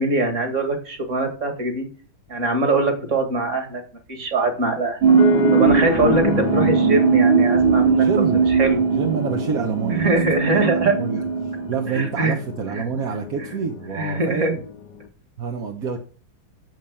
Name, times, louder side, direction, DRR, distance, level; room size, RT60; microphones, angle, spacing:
voice 1, 0.0-1.9 2.3-3.8 4.1-5.0 5.5-8.1 8.3-8.8 9.9-10.9 11.9-12.3 12.7-12.8 13.9-14.5, right 2 dB, 35° right, 5 dB, 2.3 m, -22 dB
sound 1, 5.0-12.0, right 6 dB, 80° right, 1.7 m, -19 dB
sound 2, 5.1-15.1, left 6 dB, 60° left, 1.3 m, -30 dB
voice 2, 7.9-8.4 8.9-10.1 10.6-14.6 15.4-16.0, right 6 dB, 50° right, 3 dB, 1.2 m, -27 dB
7.7 x 7.3 x 7.0 m, 0.41 s
omnidirectional pair, 2.3 m